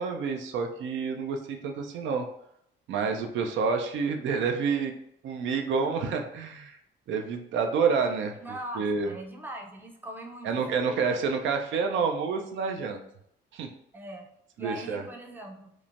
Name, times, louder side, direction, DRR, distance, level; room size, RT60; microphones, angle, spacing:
voice 1, 0.0-2.3 2.9-4.9 5.2-6.8 7.1-8.3 8.8-9.1 10.4-13.0 13.5-13.7 14.6-15.0, right 5 dB, 75° right, 4 dB, 0.4 m, -28 dB
voice 2, 8.4-11.1 13.9-14.3 14.6-15.7, right 1 dB, 10° right, 1 dB, 0.5 m, -41 dB
3.0 x 2.1 x 2.5 m, 0.73 s
cardioid pair, 90°, 20 cm